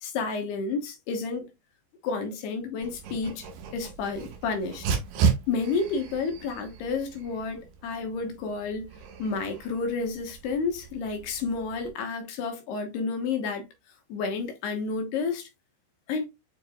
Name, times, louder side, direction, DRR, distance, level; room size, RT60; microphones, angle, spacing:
voice 1, 0.0-1.5 2.0-3.5 3.7-4.9 5.5-8.9 9.2-13.7 14.1-15.5 16.1-16.3, left 4 dB, 70° left, 2.7 m, -30 dB
Dog, 2.8-11.9, right 6 dB, 65° right, 2.8 m, -34 dB
9.2 x 4.4 x 2.3 m
omnidirectional pair, 5.9 m